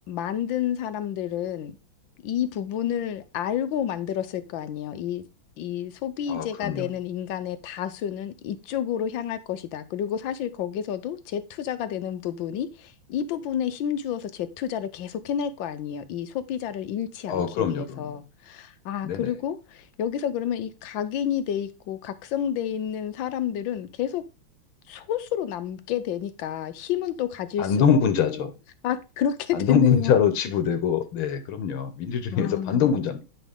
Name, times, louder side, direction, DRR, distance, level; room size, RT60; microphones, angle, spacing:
voice 1, 0.1-1.8 2.2-5.2 5.6-24.2 24.9-28.0 28.3-28.5 28.8-30.1 32.3-33.1, left 9 dB, 75° left, 1.5 m, -30 dB
voice 2, 6.3-6.9 17.3-18.1 19.0-19.3 27.6-28.5 29.5-33.2, left 7 dB, 90° left, 1.9 m, -24 dB
9.2 x 5.1 x 3.6 m
omnidirectional pair, 2.2 m